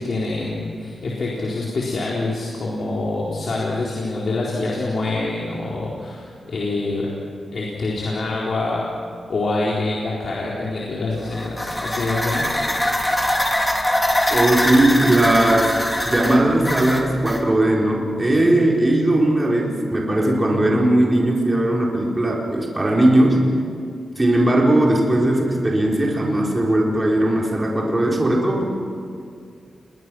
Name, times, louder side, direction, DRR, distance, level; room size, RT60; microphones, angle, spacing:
voice 1, 0.0-7.1 7.5-8.9 9.3-12.5, left 2 dB, 60° left, -4 dB, 4.2 m, -25 dB
sound 1, 11.2-17.4, left 1 dB, 10° left, 2.9 m, -23 dB
voice 2, 14.3-15.8 16.0-23.5 24.2-28.6, right 1 dB, 20° right, -2 dB, 4.3 m, -18 dB
29.5 x 22.0 x 6.3 m, 2.3 s
cardioid pair, 90°, 0 cm